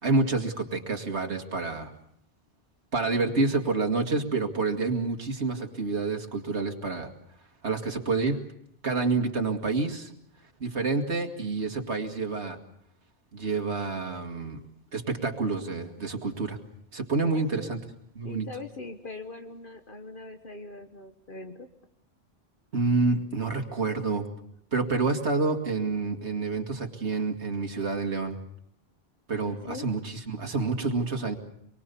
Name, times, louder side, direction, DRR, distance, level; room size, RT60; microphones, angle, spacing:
voice 1, 0.0-1.9 2.9-7.1 7.6-8.4 8.8-10.1 10.6-12.6 13.3-14.6 14.9-16.6 16.9-17.8 18.2-18.5 22.7-24.3 24.7-28.4 29.3-31.4, right 3 dB, 90° right, 4 dB, 2.4 m, -28 dB
voice 2, 17.3-17.7 18.2-21.7 29.4-29.9, left 3 dB, 50° left, 6 dB, 1.5 m, -41 dB
26.0 x 23.5 x 6.9 m, 0.72 s
omnidirectional pair, 1.1 m